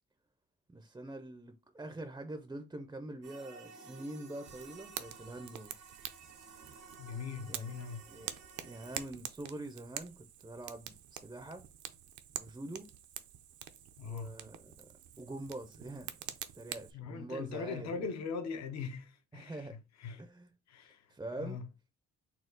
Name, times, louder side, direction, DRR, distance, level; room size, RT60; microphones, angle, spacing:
voice 1, 0.7-5.7 7.5-7.7 8.1-8.3 8.6-11.6 12.4-12.9 14.0-14.9 15.2-18.0 19.3-19.7 20.2-20.5 21.1-21.6, right 2 dB, 10° right, 0.5 m, -45 dB
sound 1, 3.2-9.1, right 4 dB, 90° right, 1.0 m, -55 dB
Fire, 4.5-16.9, right 10 dB, 70° right, 0.6 m, -47 dB
voice 2, 7.0-8.0 14.0-14.3 16.9-20.3 20.7-21.6, left 5 dB, 60° left, 0.8 m, -41 dB
4.3 x 2.3 x 3.8 m
cardioid pair, 90°, 30 cm